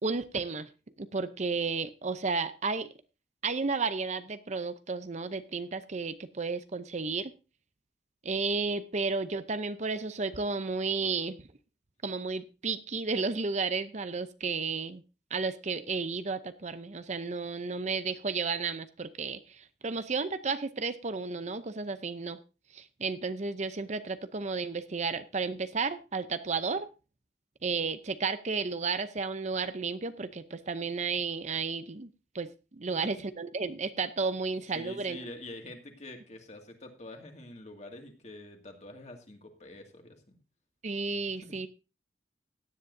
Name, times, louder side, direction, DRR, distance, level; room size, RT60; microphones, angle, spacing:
voice 1, 0.0-0.7 1.0-2.9 3.4-7.3 8.2-11.4 12.0-15.0 15.3-22.4 22.7-26.9 27.6-32.1 32.3-35.2 40.8-41.7, right 4 dB, 40° right, 12 dB, 0.7 m, -32 dB
voice 2, 34.7-40.4 41.2-41.6, left 1 dB, 40° left, 3 dB, 2.2 m, -46 dB
16.5 x 10.5 x 2.7 m, 0.31 s
head